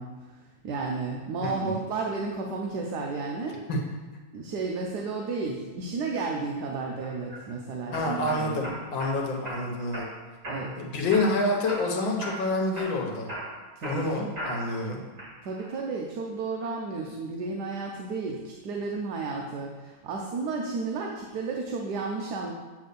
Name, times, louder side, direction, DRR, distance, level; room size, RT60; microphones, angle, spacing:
voice 1, 0.0-3.7 4.3-8.6 9.2-9.3 10.4-10.8 13.8-14.3 15.4-22.5, right 4 dB, 65° right, 0 dB, 1.2 m, -33 dB
voice 2, 1.4-1.7 3.7-3.8 7.9-10.1 10.8-13.3 13.8-15.0, left 2 dB, 75° left, 1 dB, 1.7 m, -28 dB
sound 1, 7.0-7.4 7.9-9.1 9.4-10.1 10.4-10.8 11.1-11.9 12.2-12.4 12.8-14.8 15.2-15.7, right 1 dB, 40° right, 2.8 m, -37 dB
8.3 x 3.5 x 6.7 m, 1.2 s
omnidirectional pair, 2.1 m